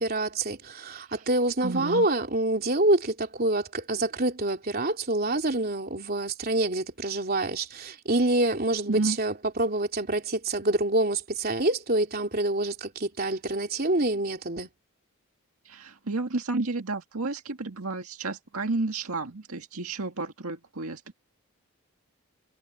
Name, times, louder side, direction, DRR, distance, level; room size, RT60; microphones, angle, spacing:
voice 1, 0.0-14.7, right 2 dB, 45° right, 3.4 m, -26 dB
voice 2, 1.6-2.1 8.9-9.2 15.7-21.1, right 3 dB, 85° right, 1.9 m, -31 dB
head